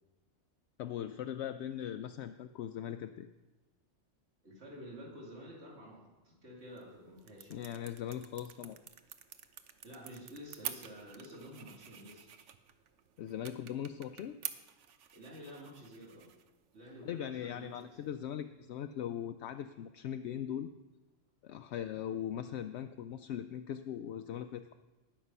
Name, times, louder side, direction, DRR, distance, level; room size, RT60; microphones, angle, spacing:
voice 1, 0.8-3.3 7.5-8.8 13.2-14.4 17.0-20.7 21.4-24.7, left 10 dB, 75° left, 9 dB, 0.8 m, -40 dB
voice 2, 4.4-7.6 9.8-12.3 15.1-16.3 16.7-18.1, equal, 65° right, -3 dB, 2.9 m, -50 dB
sound 1, 6.6-18.1, right 8 dB, 85° right, 1.1 m, -49 dB
19.5 x 6.6 x 5.6 m, 1.2 s
omnidirectional pair, 1.2 m